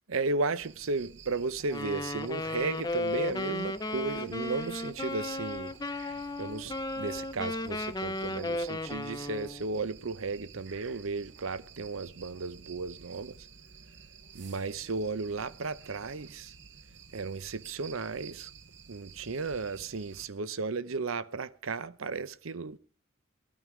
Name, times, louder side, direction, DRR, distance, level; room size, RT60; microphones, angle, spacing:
voice 1, 0.1-5.7 6.4-13.5 14.3-16.5 17.1-18.5 18.9-22.8, right 3 dB, 90° right, 0.8 m, -34 dB
sound 1, 0.6-20.3, right 6 dB, 60° right, 1.1 m, -52 dB
Wind instrument woodwind instrument, 1.6-9.6, left 2 dB, 20° left, 0.7 m, -35 dB
19.5 x 14.5 x 4.9 m
head